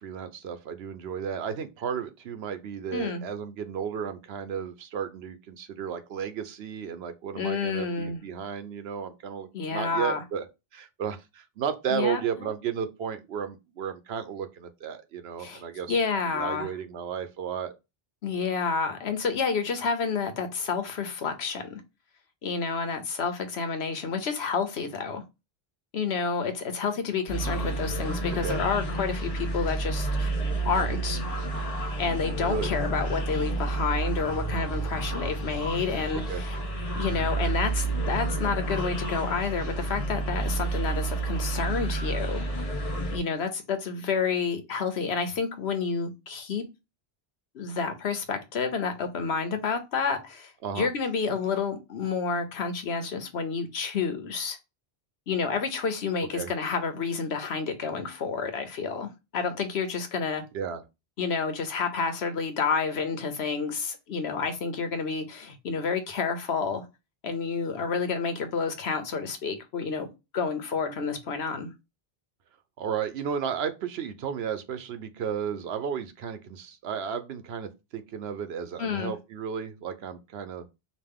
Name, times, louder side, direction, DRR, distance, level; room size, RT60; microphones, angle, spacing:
voice 1, 0.0-10.4 10.7-16.0 16.3-17.7 28.4-28.6 30.8-31.0 32.4-32.7 36.1-36.4 50.6-50.9 56.3-56.5 60.5-60.8 72.8-80.7, right 7 dB, 80° right, 0.9 m, -33 dB
voice 2, 7.3-8.2 9.5-10.2 11.9-12.5 15.4-15.6 15.9-16.7 18.2-21.8 22.4-25.2 25.9-30.3 30.6-31.2 32.0-36.6 36.9-42.5 43.1-46.6 47.5-54.6 55.3-60.4 61.2-66.9 67.2-70.1 70.3-71.7 78.8-79.1, left 5 dB, 85° left, 1.1 m, -29 dB
sound 1, 27.3-43.2, right 2 dB, 35° left, 0.9 m, -30 dB
5.1 x 2.5 x 3.5 m
omnidirectional pair, 1.0 m